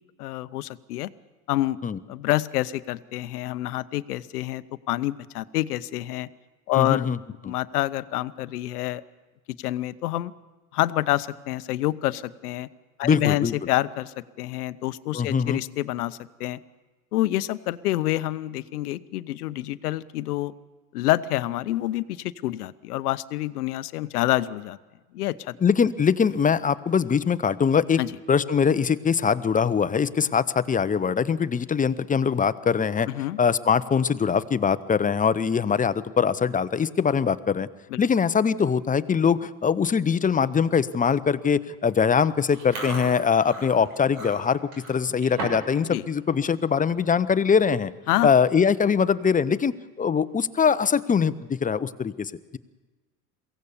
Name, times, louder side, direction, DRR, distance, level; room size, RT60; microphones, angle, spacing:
voice 1, 0.2-1.1 1.5-1.8 2.1-6.3 6.7-7.1 7.5-9.0 9.6-10.3 10.7-12.7 13.0-16.6 17.1-20.5 20.9-24.8 25.1-25.5 28.0-28.2 33.1-33.4 37.9-38.0 45.9-46.0 48.1-48.3, left 16 dB, 85° left, 16 dB, 0.8 m, -27 dB
voice 2, 6.7-7.2 13.0-13.5 15.1-15.6 25.6-28.0 28.3-33.1 33.4-37.7 38.0-44.6 44.9-47.9 48.2-52.6, left 6 dB, 20° left, 15 dB, 0.7 m, -22 dB
Chewing mastication, 42.5-45.8 46.1-46.4 46.8-47.0 47.8-47.9 48.1-48.5 48.9-49.0 50.4-51.0, right 2 dB, 80° right, 6.9 m, -37 dB
23.0 x 16.5 x 7.1 m, 1.3 s
hypercardioid pair, 85°, 44 cm